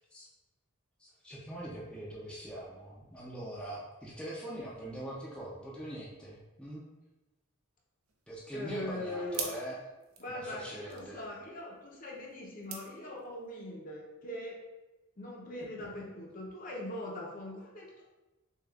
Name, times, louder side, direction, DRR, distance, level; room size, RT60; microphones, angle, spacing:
voice 1, 1.0-6.8 8.3-9.8 10.3-11.3, right 1 dB, 5° left, -6 dB, 0.5 m, -42 dB
sound 1, 8.0-13.6, right 6 dB, 70° right, 0.6 m, -46 dB
voice 2, 8.5-9.6 10.2-14.6 15.2-18.1, left 1 dB, 40° left, -2 dB, 0.7 m, -41 dB
6.5 x 2.4 x 2.4 m, 1.1 s
head